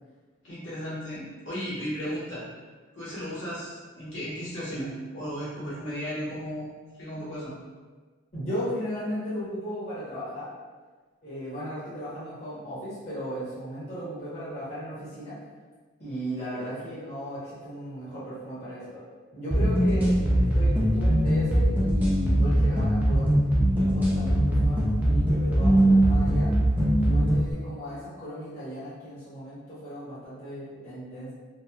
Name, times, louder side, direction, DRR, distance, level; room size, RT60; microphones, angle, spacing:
voice 1, 0.4-2.4 2.9-6.7 7.0-7.5, equal, 60° left, -10 dB, 1.2 m, -35 dB
voice 2, 8.3-10.5 11.2-15.3 16.0-19.0 19.3-23.4 23.7-26.5 26.9-31.3, equal, 35° left, -13 dB, 0.9 m, -36 dB
sound 1, 19.5-27.5, right 1 dB, 10° right, 0.3 m, -21 dB
2.9 x 2.1 x 2.3 m, 1.4 s
head